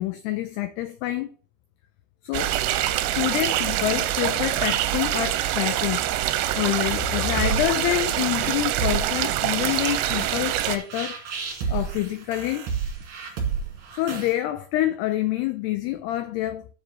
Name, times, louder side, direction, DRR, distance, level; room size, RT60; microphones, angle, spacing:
voice 1, 0.0-1.3 2.2-2.6 3.2-11.2 11.7-12.7 13.9-16.7, left 14 dB, 85° left, 2.3 m, -27 dB
sound 1, 2.3-10.8, right 13 dB, 85° right, 2.8 m, -25 dB
sound 2, 7.1-14.3, right 6 dB, 50° right, 2.6 m, -31 dB
7.5 x 5.1 x 7.3 m
omnidirectional pair, 5.4 m